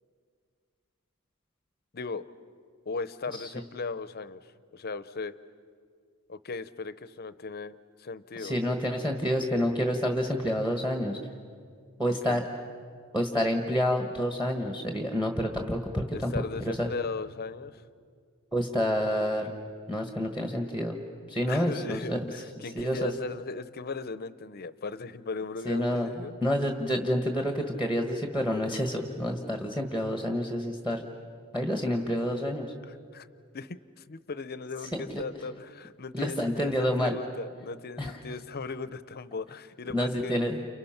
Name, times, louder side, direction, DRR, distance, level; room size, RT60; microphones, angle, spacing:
voice 1, 1.9-2.2 2.9-5.3 6.3-8.8 12.0-12.4 16.1-17.8 21.5-26.4 32.8-33.3 33.5-40.3, left 4 dB, 45° left, 14 dB, 0.7 m, -38 dB
voice 2, 8.4-11.2 12.0-12.4 13.1-16.9 18.5-19.5 19.9-20.9 21.3-22.2 22.7-23.1 25.6-31.0 31.5-32.7 35.0-35.2 36.1-37.2 38.0-38.1 39.9-40.7, equal, 5° right, 4 dB, 1.4 m, -28 dB
30.0 x 29.5 x 5.9 m, 2.1 s
head